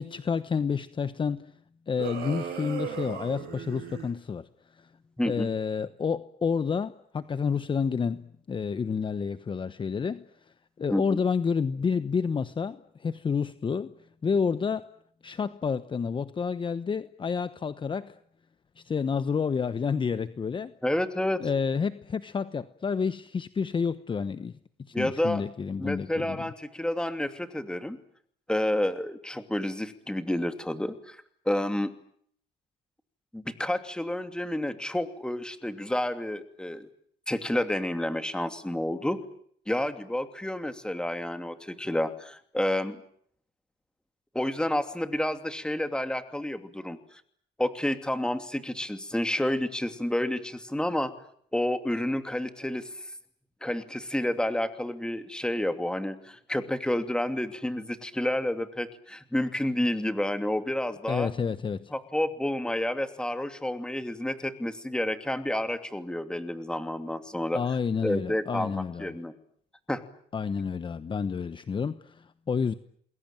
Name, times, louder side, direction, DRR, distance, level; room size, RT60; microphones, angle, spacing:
voice 1, 0.0-1.5 1.9-4.5 4.7-4.9 5.3-10.2 10.8-13.9 14.2-14.9 15.2-18.2 18.8-20.7 21.4-24.5 24.9-26.5 61.1-61.9 67.5-69.2 70.3-72.7, left 6 dB, 30° left, 13 dB, 1.1 m, -29 dB
sound 1, 2.0-4.1, right 8 dB, 65° right, 7.9 m, -36 dB
voice 2, 5.2-5.5 10.9-11.2 20.8-21.5 24.9-25.4 25.8-28.0 28.5-31.2 31.5-31.9 33.3-36.9 37.3-39.2 39.7-43.0 44.3-47.0 47.6-51.1 51.5-52.9 53.6-61.3 61.9-67.6 68.0-69.3 69.9-70.0, left 1 dB, 5° left, 9 dB, 2.8 m, -30 dB
28.5 x 21.5 x 9.1 m, 0.64 s
cardioid pair, 110°, 17 cm